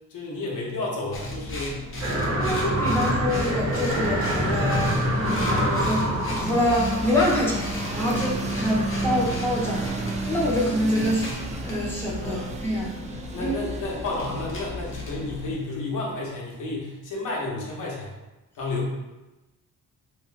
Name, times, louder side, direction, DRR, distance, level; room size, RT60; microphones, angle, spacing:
voice 1, 0.1-1.8 2.9-3.0 8.1-8.4 12.2-12.5 13.3-18.2 18.5-18.9, left 2 dB, 70° left, -4 dB, 1.1 m, -31 dB
sound 1, 1.1-15.5, left 2 dB, 40° left, 0.8 m, -34 dB
sound 2, 2.0-11.9 12.2-12.3, right 1 dB, 50° right, 1.2 m, -28 dB
voice 2, 2.3-10.0 10.3-12.9 13.4-13.5, left 1 dB, 5° left, -5 dB, 1.0 m, -26 dB
sound 3, 4.2-15.9, right 2 dB, 20° right, 0.4 m, -34 dB
3.0 x 2.8 x 3.4 m, 1.1 s
cardioid pair, 105°, 32 cm